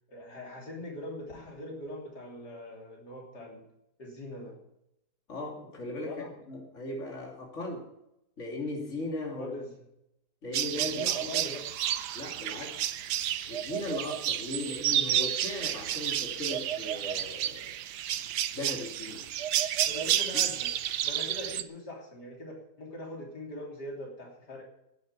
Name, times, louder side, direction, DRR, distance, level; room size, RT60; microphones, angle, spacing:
voice 1, 0.1-3.6 4.0-4.6 6.1-6.3 9.4-9.8 10.8-11.7 19.9-20.7 21.0-24.6, left 1 dB, 85° left, -1 dB, 3.9 m, -42 dB
voice 2, 5.3-7.8 8.4-9.6 10.4-11.0 12.1-12.9 13.5-17.7 18.5-19.3, left 2 dB, 45° left, 0 dB, 3.0 m, -38 dB
sound 1, 10.5-21.6, right 11 dB, 90° right, 1.3 m, -31 dB
11.5 x 9.4 x 9.5 m, 0.83 s
omnidirectional pair, 1.7 m